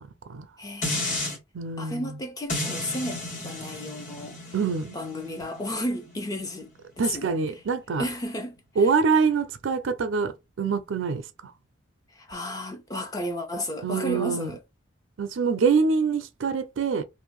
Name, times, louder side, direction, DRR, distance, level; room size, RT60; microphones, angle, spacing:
voice 1, 0.6-1.2 1.8-4.5 4.9-6.7 7.0-7.4 8.0-8.9 12.1-14.6, left 1 dB, 20° left, 0.5 m, -33 dB
sound 1, 0.8-1.4 2.5-7.6 8.1-8.2, left 1 dB, 40° left, 1.4 m, -34 dB
voice 2, 1.5-2.2 4.5-5.0 7.0-8.1 8.8-11.2 13.8-14.5 15.2-17.0, right 5 dB, 80° right, 0.4 m, -25 dB
2.6 x 2.1 x 3.0 m
head